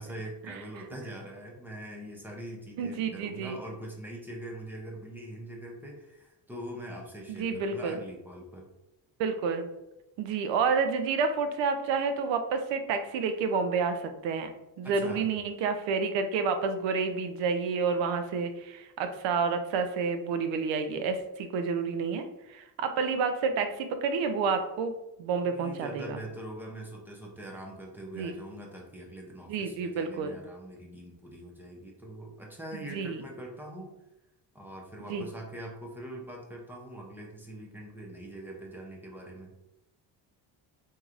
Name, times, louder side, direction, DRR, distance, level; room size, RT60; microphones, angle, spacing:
voice 1, 0.0-8.7 14.8-15.3 25.4-33.9 34.5-39.5, right 1 dB, 5° right, -1 dB, 0.4 m, -43 dB
voice 2, 2.8-3.6 7.3-8.0 9.2-9.7 10.2-14.5 14.8-22.2 22.5-24.9 25.2-26.2 28.2-28.4 29.5-30.4 32.7-33.2 35.1-35.3, right 5 dB, 80° right, 7 dB, 0.6 m, -29 dB
4.6 x 2.8 x 2.4 m, 0.93 s
cardioid pair, 175°, 44 cm